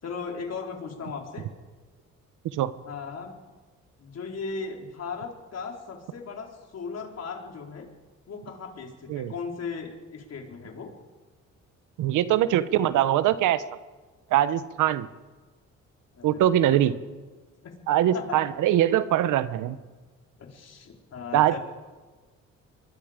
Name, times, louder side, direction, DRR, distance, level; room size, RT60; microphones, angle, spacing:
voice 1, 0.0-1.5 2.8-3.4 4.0-7.9 8.3-10.9 16.1-16.8 17.6-17.7 18.1-18.4 20.4-21.6, left 5 dB, 55° left, 1 dB, 4.0 m, -37 dB
voice 2, 12.0-13.6 14.3-15.1 16.2-16.9 17.9-19.8 21.3-21.6, right 12 dB, 85° right, 14 dB, 1.0 m, -22 dB
23.5 x 22.5 x 5.1 m, 1.3 s
cardioid pair, 90°, 30 cm